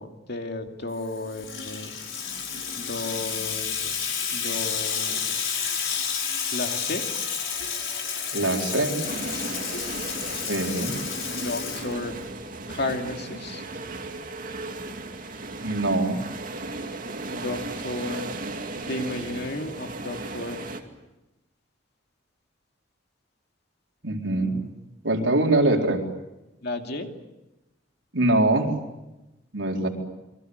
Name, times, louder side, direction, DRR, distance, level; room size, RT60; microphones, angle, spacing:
voice 1, 0.0-1.9 2.8-3.9 4.3-5.4 6.5-7.0 11.4-12.2 12.7-13.7 17.3-20.6 24.2-24.7 26.6-27.1 29.8-29.9, left 2 dB, 60° left, 4 dB, 2.6 m, -33 dB
Water tap faucet / Sink (filling or washing), 1.0-12.4, left 6 dB, 90° left, 5.2 m, -30 dB
voice 2, 8.3-9.0 10.3-10.9 15.6-16.2 24.0-24.6 25.0-26.0 28.1-28.7 29.5-29.9, right 2 dB, 80° right, 1 dB, 4.3 m, -23 dB
sound 1, 9.0-20.8, right 2 dB, 45° right, 2.5 m, -36 dB
28.5 x 23.5 x 8.0 m, 0.97 s
head